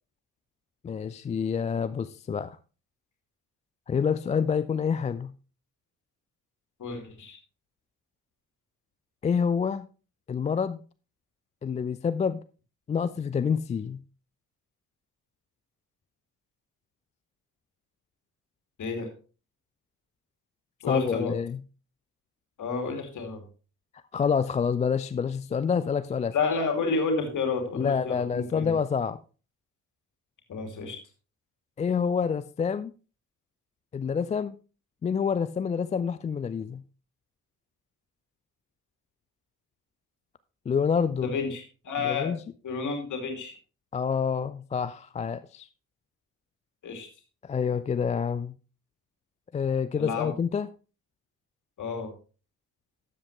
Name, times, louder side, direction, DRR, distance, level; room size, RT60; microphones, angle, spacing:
voice 1, 0.8-2.6 3.9-5.3 9.2-9.9 10.3-10.8 11.6-12.4 12.9-14.0 20.9-21.6 24.1-26.3 27.7-29.2 31.8-32.9 33.9-34.5 35.0-36.8 40.7-41.3 42.0-42.4 43.9-45.7 47.4-48.5 49.5-50.7, left 6 dB, 15° left, 0.4 m, -27 dB
voice 2, 6.8-7.4 18.8-19.1 20.8-21.3 22.6-23.4 26.3-28.7 30.5-31.0 41.2-42.4 42.6-43.6 46.8-47.1 49.9-50.3 51.8-52.1, left 4 dB, 45° left, 2.8 m, -30 dB
13.0 x 7.8 x 3.2 m
figure-of-eight pair, 45°, 42 cm